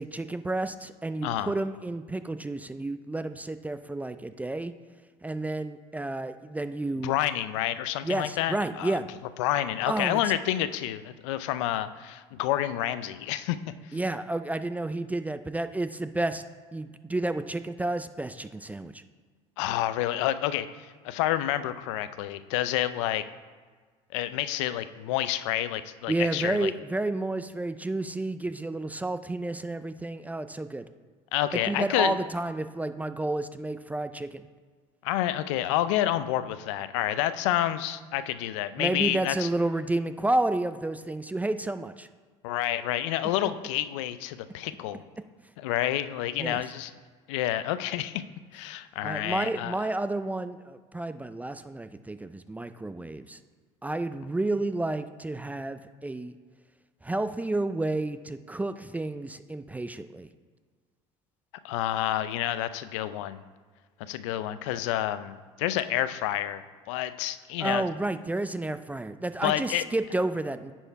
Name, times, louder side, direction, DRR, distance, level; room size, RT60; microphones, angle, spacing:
voice 1, 0.0-4.7 5.2-7.1 8.0-9.1 9.9-10.2 13.9-16.4 16.7-19.0 26.1-30.8 31.7-34.4 38.8-42.1 46.4-46.6 49.0-53.4 53.8-56.3 57.0-60.3 67.6-70.7, right 2 dB, 10° right, 11 dB, 0.3 m, -31 dB
voice 2, 7.0-9.0 9.4-13.6 13.8-14.0 19.6-23.2 24.1-26.7 31.3-32.2 35.0-39.5 42.4-45.0 45.6-46.9 47.3-48.2 48.5-49.7 61.6-63.4 64.1-66.6 66.9-67.8 69.4-69.8, left 13 dB, 85° left, 13 dB, 0.5 m, -29 dB
9.8 x 4.5 x 4.6 m, 1.5 s
supercardioid pair, 90°, 15 cm